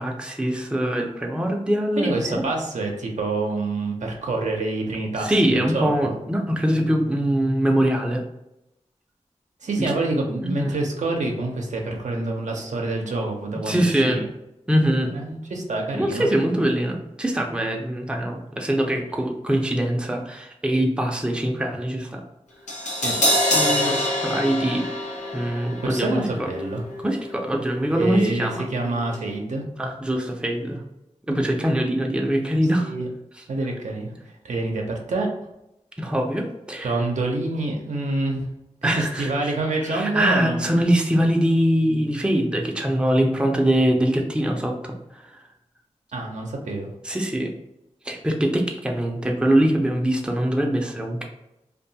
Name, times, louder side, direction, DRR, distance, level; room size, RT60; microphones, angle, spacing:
voice 1, 0.0-2.4 5.2-8.2 9.8-9.9 10.4-10.7 13.7-14.2 14.7-15.1 15.9-22.2 23.5-24.8 25.3-26.5 27.0-28.6 29.8-30.8 31.3-32.9 33.4-33.5 36.0-37.0 38.8-39.5 39.8-45.4 47.0-47.5 48.0-51.2, right 1 dB, 10° right, 1 dB, 0.5 m, -23 dB
voice 2, 2.0-6.1 9.6-14.3 15.1-16.3 22.9-23.2 25.8-26.8 27.9-29.6 32.8-33.1 33.5-34.1 34.4-35.3 36.8-38.5 38.8-40.8 46.1-46.9, right 2 dB, 75° right, 1 dB, 0.5 m, -27 dB
Crash cymbal, 22.7-28.8 29.1-29.2, left 1 dB, 75° left, 0.7 m, -26 dB
2.6 x 2.2 x 2.7 m, 0.88 s
cardioid pair, 45°, 12 cm